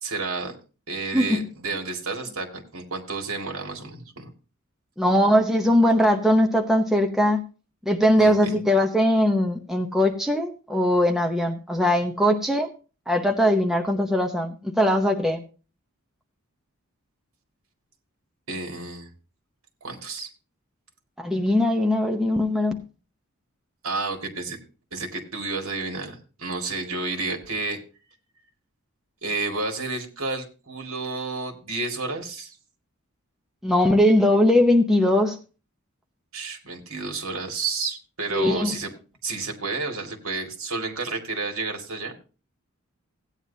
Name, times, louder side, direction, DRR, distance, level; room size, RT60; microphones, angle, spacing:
voice 1, 0.0-0.6 0.9-4.3 8.2-8.6 18.5-19.1 19.8-20.3 23.8-24.6 24.9-27.8 29.2-32.6 36.3-38.9 39.2-42.1, right 3 dB, 70° right, 3 dB, 2.1 m, -31 dB
voice 2, 5.0-7.4 7.9-12.7 13.1-15.4 21.2-22.8 33.6-35.4 38.3-38.7, left 1 dB, ahead, 2 dB, 0.8 m, -20 dB
16.0 x 9.2 x 2.8 m, 0.35 s
head